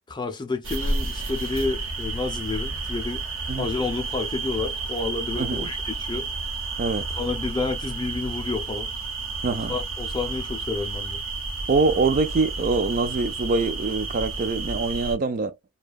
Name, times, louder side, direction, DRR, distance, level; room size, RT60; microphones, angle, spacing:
voice 1, 0.1-3.2 3.6-6.3 7.1-8.9 9.7-11.2, left 3 dB, 20° left, 0.4 m, -30 dB
sound 1, 0.6-15.2, right 3 dB, 70° right, 0.9 m, -31 dB
voice 2, 5.4-5.7 6.8-7.1 9.4-9.7 11.7-15.5, right 3 dB, 40° right, 0.4 m, -24 dB
2.7 x 2.2 x 2.2 m
head